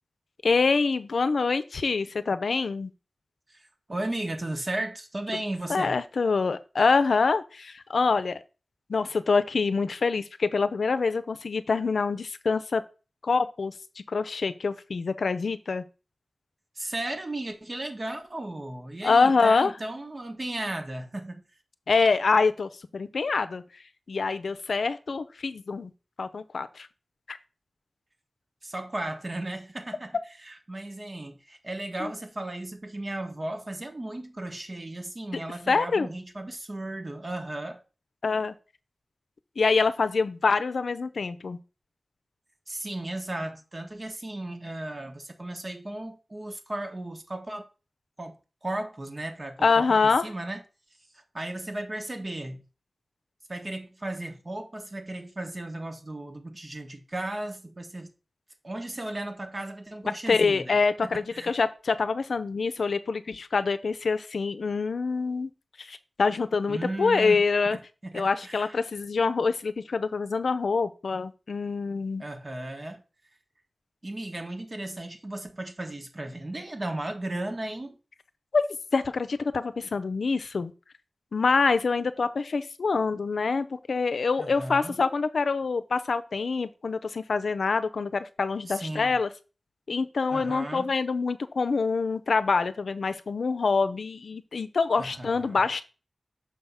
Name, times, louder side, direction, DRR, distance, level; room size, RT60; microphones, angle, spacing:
voice 1, 0.4-2.9 5.7-8.4 8.9-12.8 13.2-15.8 19.0-19.7 21.9-23.6 24.1-25.9 26.2-26.9 27.3-27.4 32.0-32.1 35.7-36.1 38.2-38.5 39.6-41.6 49.6-50.3 60.3-65.5 65.8-67.8 68.1-72.2 78.5-78.6 78.9-80.7 81.3-89.3 89.9-95.8, left 4 dB, 80° left, 0.5 m, -25 dB
voice 2, 3.5-5.9 16.7-21.4 28.6-37.8 42.7-47.7 48.2-48.4 48.6-50.6 51.3-52.6 53.5-58.1 58.6-60.8 61.3-61.5 66.7-67.4 68.0-68.8 72.2-73.0 74.0-78.0 84.4-85.0 88.7-89.2 90.3-90.9 95.0-95.7, right 1 dB, 35° right, 1.3 m, -35 dB
6.5 x 3.5 x 5.5 m
wide cardioid pair, 90°, 0 cm